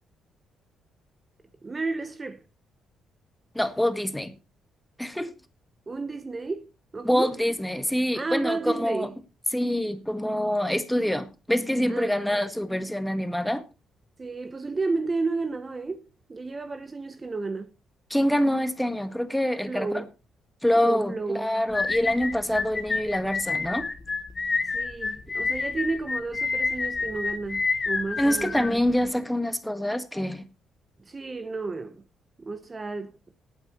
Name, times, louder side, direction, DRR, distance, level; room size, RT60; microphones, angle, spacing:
voice 1, 1.6-2.4 5.9-7.4 8.1-9.2 11.9-12.2 14.2-17.7 19.7-20.1 20.7-21.5 24.7-28.6 31.1-32.0 32.4-33.1, right 3 dB, 30° right, 1.0 m, -32 dB
voice 2, 3.5-4.3 5.0-5.3 7.0-9.1 9.5-13.6 18.1-20.0 20.6-23.8 28.2-30.5, left 1 dB, 5° left, 1.6 m, -25 dB
sound 1, 21.7-29.1, left 4 dB, 30° left, 1.4 m, -29 dB
19.0 x 9.1 x 3.0 m
cardioid pair, 90°, 0 cm